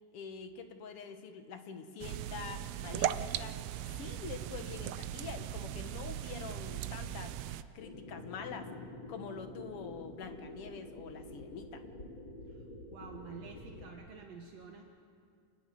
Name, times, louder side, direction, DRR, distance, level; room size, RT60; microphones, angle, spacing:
voice 1, 0.1-3.5 4.0-7.3 7.7-8.7 9.1-11.8, left 6 dB, 60° left, 7 dB, 1.8 m, -45 dB
sound 1, 2.0-7.6, right 12 dB, 85° right, 1.3 m, -38 dB
sound 2, 7.8-13.9, left 1 dB, 40° left, 2.6 m, -48 dB
voice 2, 12.9-14.8, right 5 dB, 65° right, 2 dB, 2.2 m, -49 dB
28.5 x 10.0 x 9.3 m, 2.4 s
omnidirectional pair, 3.5 m